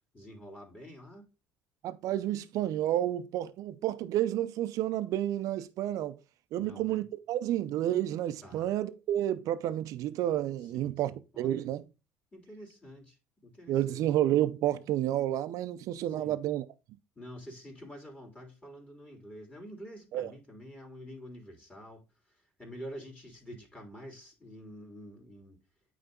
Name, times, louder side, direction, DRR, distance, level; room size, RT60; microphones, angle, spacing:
voice 1, 0.1-1.3 6.6-7.0 8.4-8.7 10.6-11.7 12.3-13.2 13.4-14.0 16.2-16.4 17.1-25.6, equal, 20° left, 3.2 m, -48 dB
voice 2, 1.8-6.2 6.5-11.8 13.7-16.7 20.1-20.3, right 12 dB, 65° right, 0.6 m, -30 dB
8.8 x 3.4 x 3.8 m
hypercardioid pair, 65°, 6 cm